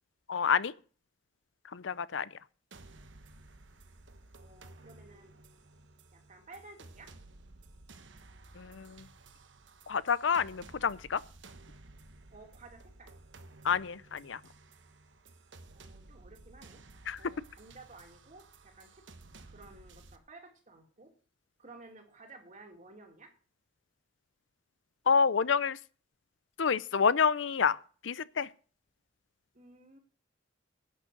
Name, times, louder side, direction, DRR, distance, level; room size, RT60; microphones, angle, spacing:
voice 1, 0.3-0.7 1.6-2.3 8.5-9.1 9.9-11.2 13.6-14.4 17.1-17.2 25.1-25.8 26.6-28.5, left 6 dB, 75° left, 0.6 m, -28 dB
sound 1, 2.7-20.2, right 2 dB, 75° right, 1.2 m, -55 dB
voice 2, 4.4-5.3 6.1-7.1 12.3-13.1 15.7-16.8 17.2-19.0 19.5-21.1 21.6-23.3 29.5-30.0, right 3 dB, 40° right, 2.7 m, -54 dB
11.0 x 6.4 x 8.5 m
head